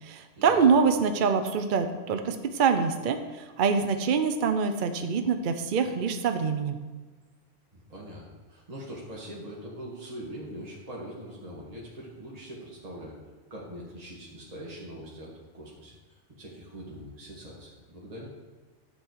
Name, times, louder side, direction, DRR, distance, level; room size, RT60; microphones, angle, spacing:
voice 1, 0.0-6.8, right 5 dB, 50° right, 7 dB, 0.7 m, -25 dB
voice 2, 7.7-8.2 8.5-13.1 13.5-18.3, equal, 30° right, -4 dB, 1.8 m, -42 dB
11.0 x 7.0 x 4.7 m, 1.3 s
omnidirectional pair, 1.3 m